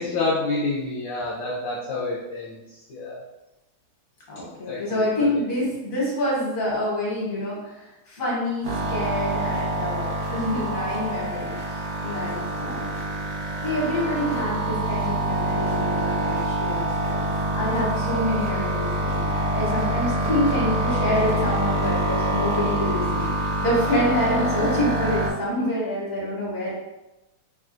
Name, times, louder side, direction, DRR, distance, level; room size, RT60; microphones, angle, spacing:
voice 1, 0.0-3.2 4.7-5.4 12.0-12.1, left 3 dB, 75° left, -7 dB, 1.0 m, -29 dB
voice 2, 4.3-11.5 12.0-12.9 13.6-17.3 17.5-23.3 23.6-26.7, left 1 dB, 45° left, -5 dB, 1.3 m, -27 dB
sound 1, 8.6-25.3, right 1 dB, 70° right, 0.9 m, -26 dB
3.5 x 2.3 x 2.4 m, 0.99 s
omnidirectional pair, 2.3 m